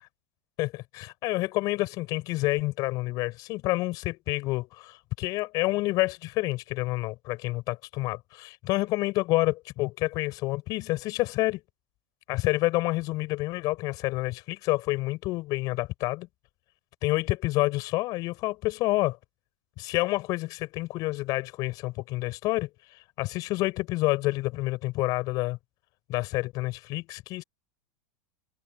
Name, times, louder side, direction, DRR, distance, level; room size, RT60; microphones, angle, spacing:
voice 1, 0.6-11.6 12.3-16.3 17.0-19.2 19.8-22.7 23.2-25.6 26.1-27.4, left 20 dB, 45° left, 7.0 m, -28 dB
supercardioid pair, 135°, 9 cm